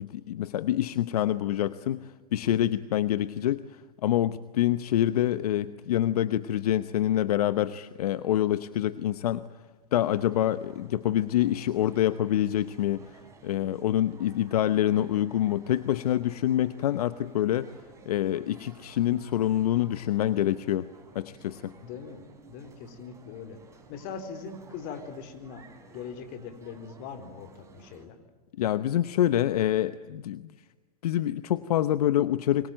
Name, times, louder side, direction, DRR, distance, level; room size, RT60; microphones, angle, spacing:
voice 1, 0.0-3.6 4.0-9.5 9.9-13.1 13.4-17.7 18.1-20.9 21.1-21.7 28.6-30.5 31.0-32.7, left 12 dB, 75° left, 13 dB, 0.9 m, -26 dB
sound 1, 10.0-28.1, right 4 dB, 15° right, 6.1 m, -54 dB
voice 2, 21.8-23.6 23.9-28.2, left 6 dB, 45° left, 7 dB, 3.9 m, -41 dB
27.0 x 23.5 x 9.0 m, 1.2 s
hypercardioid pair, 125°, 20 cm